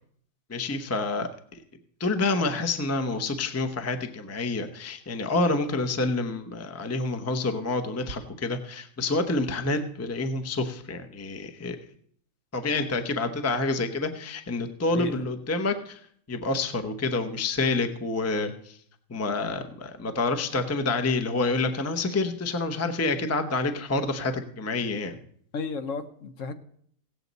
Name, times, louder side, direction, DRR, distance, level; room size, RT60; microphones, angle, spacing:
voice 1, 0.5-1.3 2.0-11.8 12.5-16.0 16.3-18.8 19.1-25.2, left 3 dB, 15° left, 7 dB, 0.6 m, -28 dB
voice 2, 14.9-15.2 25.5-26.5, left 4 dB, 60° left, 8 dB, 1.1 m, -33 dB
17.5 x 8.0 x 4.0 m, 0.63 s
omnidirectional pair, 1.6 m